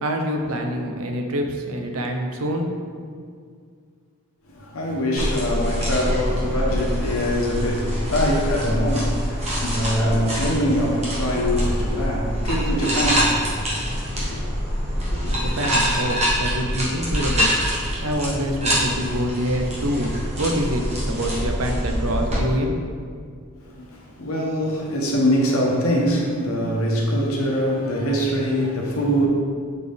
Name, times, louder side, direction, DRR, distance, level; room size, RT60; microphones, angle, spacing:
voice 1, 0.0-2.7 15.3-17.5 18.0-22.8, equal, 80° right, 0.7 m, -26 dB
voice 2, 4.5-14.4 14.9-15.4 23.6-29.3, equal, 80° left, 1.1 m, -23 dB
sound 1, 5.2-22.4, equal, 30° right, 1.3 m, -25 dB
6.6 x 4.1 x 3.5 m
head